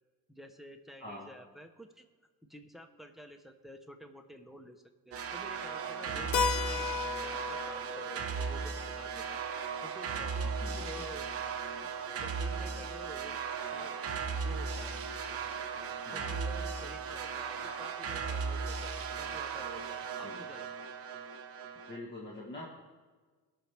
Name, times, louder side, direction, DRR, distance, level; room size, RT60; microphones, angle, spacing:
voice 1, 0.3-2.1 2.5-9.4 9.8-10.5 10.9-11.3 11.8-11.9 12.2-13.4 13.7-14.1 14.4-15.0 16.1-20.9, equal, ahead, 6 dB, 0.7 m, -50 dB
sound 1, 5.1-22.0, right 5 dB, 45° right, 0.8 m, -37 dB
voice 2, 6.1-6.6 10.6-11.1 16.0-16.3 20.2-20.5 21.9-22.7, left 1 dB, 30° left, -3 dB, 1.4 m, -45 dB
Keyboard (musical), 6.3-10.8, left 6 dB, 80° left, 0.7 m, -37 dB
19.0 x 6.3 x 3.4 m, 1.4 s
cardioid pair, 130°, 33 cm